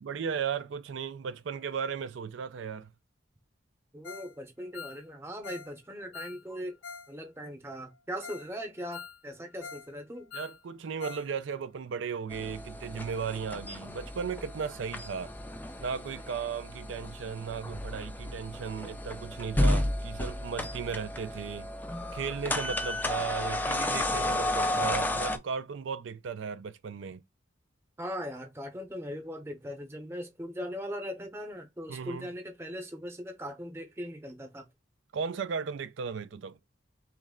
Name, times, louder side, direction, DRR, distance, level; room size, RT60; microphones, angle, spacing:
voice 1, 0.0-2.9 10.3-15.3 15.8-21.7 22.1-27.2 31.9-32.3 35.1-36.6, right 6 dB, 75° right, 0.4 m, -36 dB
voice 2, 3.9-6.8 7.1-10.3 28.0-34.7, equal, 15° right, 0.8 m, -39 dB
Ringtone, 4.0-4.3 4.6-7.1 7.4-7.5 7.9-8.0 8.2-8.5 8.8-9.9 10.2-11.3 11.5-11.6 12.1-12.2, left 6 dB, 90° left, 0.6 m, -45 dB
sound 1, 12.3-25.4, left 1 dB, 10° left, 0.4 m, -32 dB
3.2 x 3.1 x 3.6 m
head